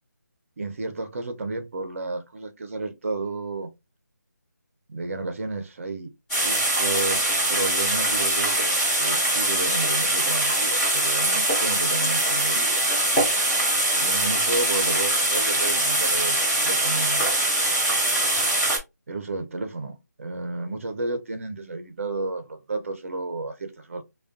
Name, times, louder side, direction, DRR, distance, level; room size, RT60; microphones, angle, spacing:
voice 1, 0.6-3.7 4.9-6.1 6.4-12.8 13.9-17.3 19.1-24.0, right 3 dB, 45° right, 0.6 m, -32 dB
sound 1, 6.3-18.8, right 1 dB, 5° left, 0.4 m, -23 dB
2.5 x 2.2 x 2.4 m
figure-of-eight pair, 165°, 10 cm